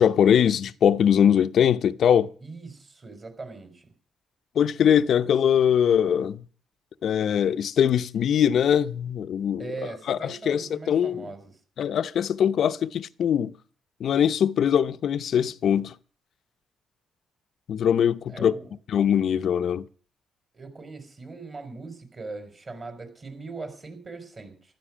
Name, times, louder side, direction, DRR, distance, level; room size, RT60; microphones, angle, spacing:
voice 1, 0.0-2.3 4.6-6.4 7.0-9.7 10.1-11.2 11.8-13.5 14.0-15.9 17.7-18.5 18.9-19.9, left 9 dB, 65° left, 0.7 m, -22 dB
voice 2, 2.4-3.9 9.6-11.6 18.3-18.7 20.5-24.8, right 3 dB, 35° right, 4.6 m, -40 dB
15.0 x 12.5 x 6.3 m
cardioid pair, 90°, 0 cm